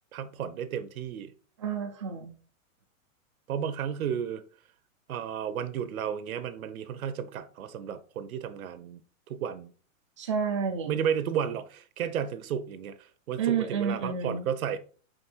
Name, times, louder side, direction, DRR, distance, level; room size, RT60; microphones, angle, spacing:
voice 1, 0.1-1.3 3.5-4.4 5.1-9.0 9.3-9.7 10.9-13.0 13.3-14.8, right 8 dB, 90° right, 0.9 m, -33 dB
voice 2, 1.6-2.3 10.2-11.0 13.4-14.5, right 6 dB, 25° right, 0.4 m, -30 dB
5.2 x 4.2 x 4.4 m
supercardioid pair, 175°, 41 cm